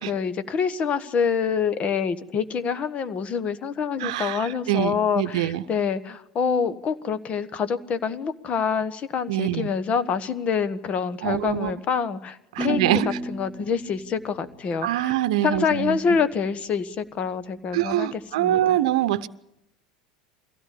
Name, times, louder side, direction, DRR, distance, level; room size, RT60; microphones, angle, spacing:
voice 1, 0.0-13.0 13.3-15.2 15.4-18.8, left 6 dB, 40° left, 1.4 m, -26 dB
voice 2, 4.0-5.6 9.3-9.7 11.2-11.7 12.6-13.2 14.8-16.0 17.7-19.3, right 13 dB, 70° right, 0.8 m, -24 dB
sound 1, 12.6-15.5, equal, 5° left, 2.6 m, -34 dB
23.0 x 16.5 x 8.5 m
hypercardioid pair, 80°, 4 cm